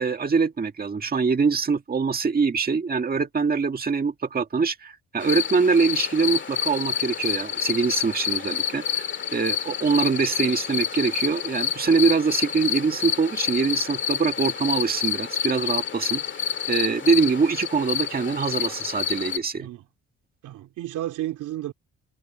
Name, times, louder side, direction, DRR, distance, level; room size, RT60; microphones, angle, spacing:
voice 1, 0.0-19.7, right 5 dB, 30° right, 1.7 m, -24 dB
sound 1, 5.2-19.4, left 8 dB, 40° left, 2.2 m, -28 dB
voice 2, 20.4-21.7, right 13 dB, 85° right, 3.1 m, -32 dB
cardioid pair, 90°, 30 cm